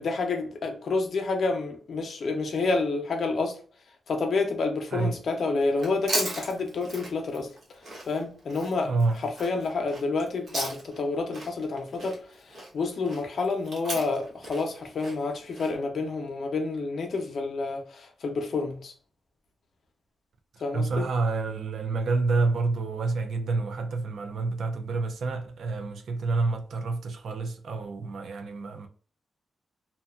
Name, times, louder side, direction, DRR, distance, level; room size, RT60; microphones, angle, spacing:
voice 1, 0.0-3.6 4.1-7.5 8.1-8.9 9.2-18.9 20.6-21.0, left 3 dB, 70° left, 0.6 m, -29 dB
Chewing mastication, 5.7-11.1 11.3-15.7, right 1 dB, 60° right, 1.0 m, -37 dB
voice 2, 8.8-9.2 20.5-28.9, right 3 dB, 80° right, 0.4 m, -28 dB
2.7 x 2.2 x 2.3 m
cardioid pair, 90°, 0 cm